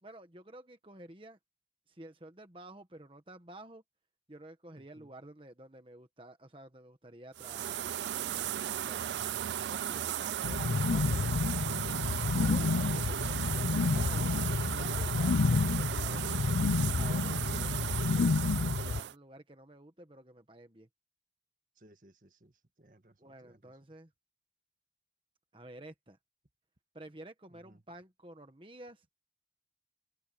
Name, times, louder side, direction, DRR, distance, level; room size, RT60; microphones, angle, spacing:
voice 1, 0.0-1.4 1.9-3.8 4.3-8.1 8.8-9.1 9.7-16.3 16.9-20.9 23.2-24.1 25.5-26.2 26.9-29.1, right 1 dB, 30° right, 1.5 m, -51 dB
voice 2, 4.7-5.1 21.8-23.8 27.5-27.8, right 1 dB, 50° right, 1.7 m, -61 dB
sound 1, 7.4-19.1, right 10 dB, 85° right, 0.4 m, -36 dB
sound 2, 10.4-19.0, left 4 dB, 85° left, 0.5 m, -30 dB
head